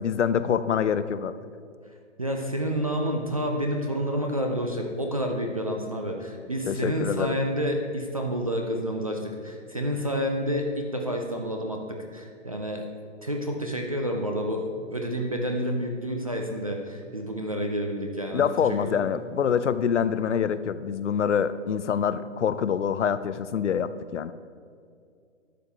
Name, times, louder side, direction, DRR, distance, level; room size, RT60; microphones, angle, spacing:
voice 1, 0.0-1.3 6.7-7.4 18.3-24.3, left 7 dB, 70° left, 14 dB, 0.6 m, -25 dB
voice 2, 2.2-12.8 13.2-19.0, equal, 30° right, 2 dB, 0.4 m, -29 dB
11.5 x 6.8 x 3.4 m, 2.3 s
hypercardioid pair, 165°, 38 cm